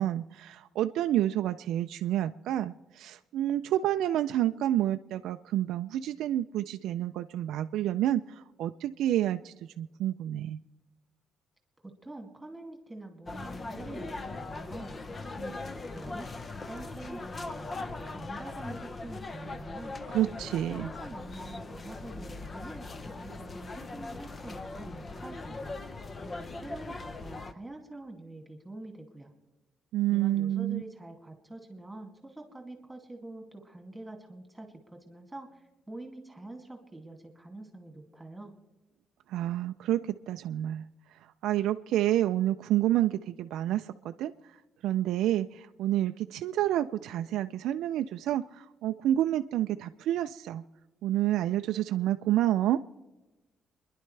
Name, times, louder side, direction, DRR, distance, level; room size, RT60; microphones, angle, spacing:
voice 1, 0.0-10.6 20.1-20.9 29.9-30.8 39.3-40.0 40.3-40.8 41.4-44.3 44.8-50.6 51.0-52.8, right 13 dB, 85° right, 8 dB, 0.4 m, -29 dB
voice 2, 11.8-16.3 16.6-20.0 20.6-25.8 26.2-29.3 30.1-38.5, right 2 dB, 10° right, 3 dB, 2.4 m, -45 dB
sound 1, 13.3-27.5, left 3 dB, 30° left, 0.8 m, -40 dB
28.5 x 11.0 x 3.3 m, 1.1 s
cardioid pair, 130°, 0 cm